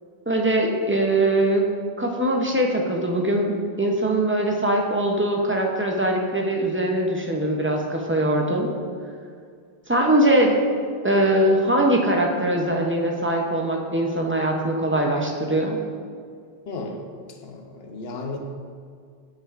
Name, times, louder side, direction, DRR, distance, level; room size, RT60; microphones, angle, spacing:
voice 1, 0.3-1.7 2.0-8.7 9.9-10.5 11.0-15.8, right 1 dB, 15° right, 1 dB, 0.4 m, -22 dB
voice 2, 16.7-17.0 17.4-18.4, left 3 dB, 75° left, 3 dB, 0.9 m, -34 dB
8.6 x 5.8 x 2.4 m, 2.1 s
omnidirectional pair, 1.1 m